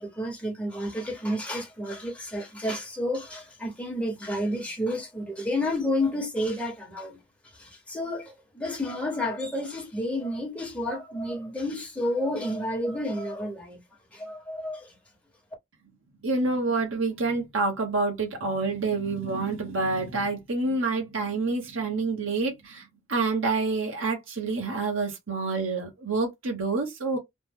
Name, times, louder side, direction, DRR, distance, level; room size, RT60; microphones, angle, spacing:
voice 1, 0.0-7.2 7.5-13.8 14.1-15.0, left 1 dB, 5° left, 1.1 m, -30 dB
voice 2, 16.2-27.2, right 3 dB, 85° right, 1.1 m, -28 dB
3.2 x 2.2 x 3.5 m
head